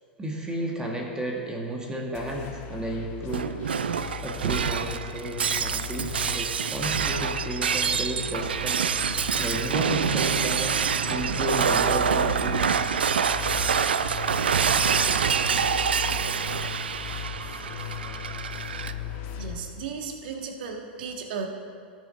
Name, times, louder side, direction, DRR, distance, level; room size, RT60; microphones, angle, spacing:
voice 1, 0.2-8.8 9.4-10.8 11.1-12.8, right 1 dB, 15° right, -1 dB, 1.7 m, -33 dB
sound 1, 2.1-19.6, left 9 dB, 45° left, 1.5 m, -37 dB
Shatter, 3.3-18.9, right 7 dB, 80° right, 0.5 m, -26 dB
voice 2, 19.4-21.5, right 5 dB, 60° right, 3 dB, 1.6 m, -35 dB
18.5 x 7.1 x 4.2 m, 2.2 s
figure-of-eight pair, 90°, 5 cm